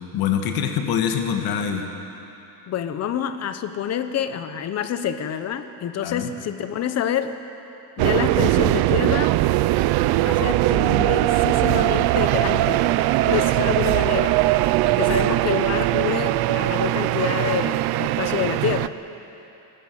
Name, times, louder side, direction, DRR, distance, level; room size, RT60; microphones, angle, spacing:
voice 1, 0.0-1.9 6.0-6.3, left 8 dB, 60° left, 5 dB, 1.8 m, -24 dB
voice 2, 2.7-7.4 8.0-9.4 10.2-12.9 13.2-18.9, left 9 dB, 40° left, 10 dB, 1.1 m, -27 dB
sound 1, 8.0-18.9, right 16 dB, 60° right, 0.6 m, -20 dB
21.5 x 18.5 x 7.7 m, 2.9 s
cardioid pair, 160°, 41 cm